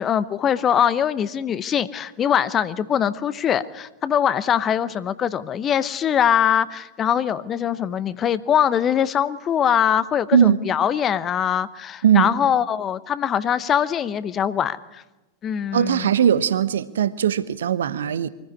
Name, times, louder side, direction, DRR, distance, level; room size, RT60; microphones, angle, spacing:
voice 1, 0.0-15.0 15.4-16.1, left 9 dB, 25° left, 0.8 m, -22 dB
voice 2, 12.0-12.3 15.7-18.3, right 9 dB, 65° right, 0.9 m, -19 dB
24.5 x 15.0 x 9.8 m
figure-of-eight pair, 90°, 0 cm